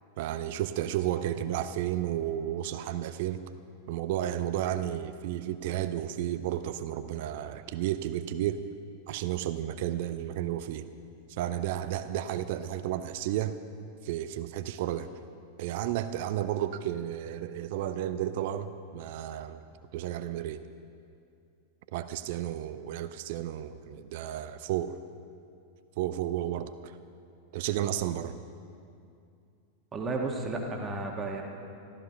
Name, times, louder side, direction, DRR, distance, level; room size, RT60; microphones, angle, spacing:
voice 1, 0.2-3.4 3.9-8.6 9.1-10.9 11.3-13.6 14.0-15.1 15.6-19.6 19.9-20.6 21.9-25.0 26.0-27.0 27.5-28.4, right 12 dB, 50° right, 12 dB, 0.5 m, -32 dB
voice 2, 29.9-31.4, right 3 dB, 20° right, 1 dB, 1.7 m, -33 dB
14.0 x 13.0 x 5.8 m, 2.5 s
figure-of-eight pair, 90°, 0 cm